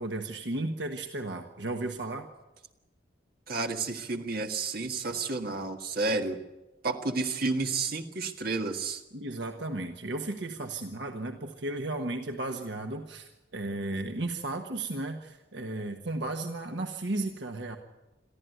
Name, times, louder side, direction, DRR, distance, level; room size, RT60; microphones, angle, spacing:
voice 1, 0.0-2.3 9.1-17.8, right 2 dB, 70° right, 4 dB, 1.4 m, -34 dB
voice 2, 3.5-6.4 6.8-9.0, right 3 dB, 55° right, 4 dB, 1.7 m, -31 dB
23.0 x 14.0 x 9.3 m, 1.1 s
head